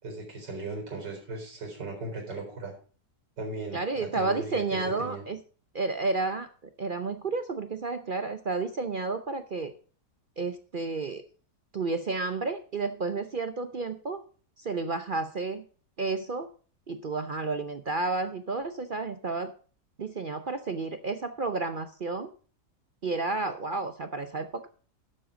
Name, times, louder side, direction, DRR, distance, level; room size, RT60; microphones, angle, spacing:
voice 1, 0.0-2.7 3.4-5.2, right 3 dB, 90° right, 1 dB, 4.7 m, -37 dB
voice 2, 3.7-5.4 5.7-6.5 6.8-9.7 10.4-11.2 11.7-14.2 14.6-15.6 16.0-16.5 16.9-19.5 20.0-22.3 23.0-24.7, right 3 dB, 50° right, 9 dB, 0.6 m, -31 dB
11.5 x 7.7 x 5.0 m, 0.40 s
omnidirectional pair, 1.8 m